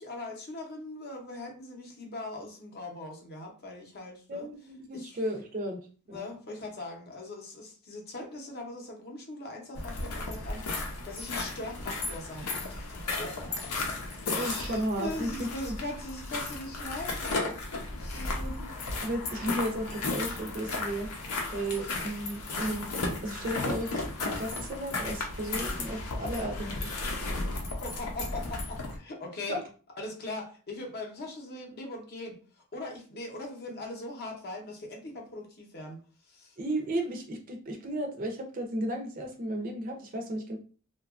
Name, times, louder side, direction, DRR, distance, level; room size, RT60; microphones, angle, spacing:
voice 1, 0.0-4.5 4.9-5.2 6.1-13.7 14.2-17.6 18.0-18.4 21.9-22.0 26.2-26.8 27.8-29.6 30.0-32.4 32.7-36.0 36.3-36.6, left 2 dB, 45° left, 1 dB, 0.6 m, -41 dB
voice 2, 4.3-6.3 14.3-15.7 18.1-18.7 19.0-21.1 21.5-22.9 23.2-26.9 29.5-29.6 36.6-40.6, right 1 dB, 40° right, 2 dB, 0.5 m, -34 dB
Content warning, 9.7-29.0, left 2 dB, 90° left, 0.7 m, -34 dB
2.7 x 2.2 x 2.4 m, 0.39 s
head